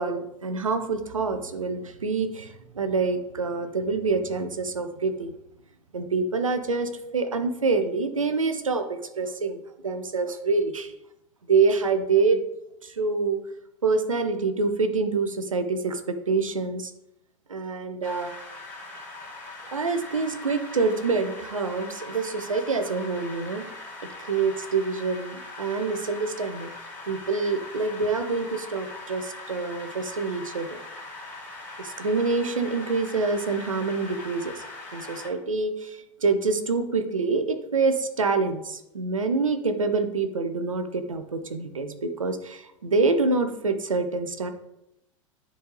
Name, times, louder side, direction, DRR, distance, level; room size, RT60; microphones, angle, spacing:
voice 1, 0.0-5.3 5.9-10.9 11.5-12.4 12.8-13.4 13.8-16.9 17.5-18.3 19.7-23.7 24.0-26.7 27.0-30.8 31.8-34.6 34.9-44.5, right 4 dB, 85° right, 9 dB, 0.7 m, -26 dB
sound 1, 18.0-35.3, left 2 dB, 10° left, 2.3 m, -41 dB
10.0 x 3.8 x 3.3 m, 0.85 s
figure-of-eight pair, 90°, 17 cm